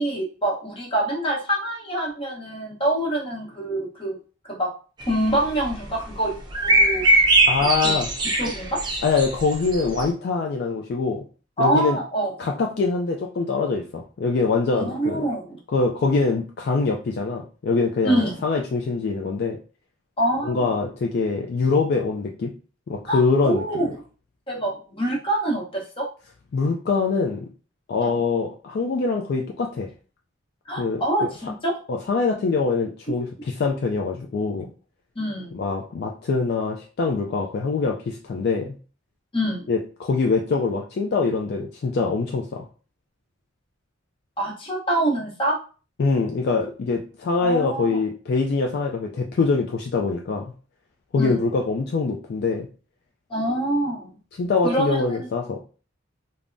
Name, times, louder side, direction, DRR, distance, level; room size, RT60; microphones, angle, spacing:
voice 1, 0.0-4.2 4.5-4.7 5.0-6.4 6.6-7.0 7.8-7.9 8.4-8.8 11.6-12.3 14.7-15.6 18.0-18.4 20.2-20.7 23.1-23.9 24.5-26.1 28.0-28.2 30.7-31.7 35.2-35.6 39.3-39.7 44.4-45.6 47.4-48.0 51.2-51.3 53.3-54.1 54.6-55.3, right 1 dB, 25° left, -2 dB, 0.9 m, -25 dB
sound 1, 5.0-5.7 6.5-10.0, right 2 dB, 20° right, 0.4 m, -20 dB
voice 2, 7.5-8.1 9.0-11.2 11.6-12.0 12.4-15.2 15.7-19.6 20.4-22.5 22.9-23.6 26.5-27.5 27.9-29.9 30.7-31.0 31.9-34.7 35.5-38.7 39.7-42.6 46.0-50.4 51.1-52.7 54.4-55.6, left 4 dB, 55° left, 1 dB, 0.3 m, -24 dB
3.4 x 2.0 x 2.5 m, 0.36 s
head